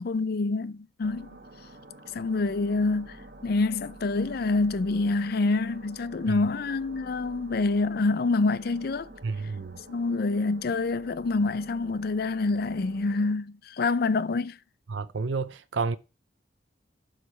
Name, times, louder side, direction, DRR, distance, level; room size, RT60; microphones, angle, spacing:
voice 1, 0.0-1.4 2.1-3.2 3.4-9.1 9.9-14.6, left 3 dB, 55° left, 0.5 m, -26 dB
sound 1, 1.0-13.3, right 1 dB, 55° right, 1.8 m, -49 dB
voice 2, 9.2-9.8 14.9-16.0, right 4 dB, 80° right, 0.6 m, -30 dB
12.5 x 5.0 x 4.3 m
head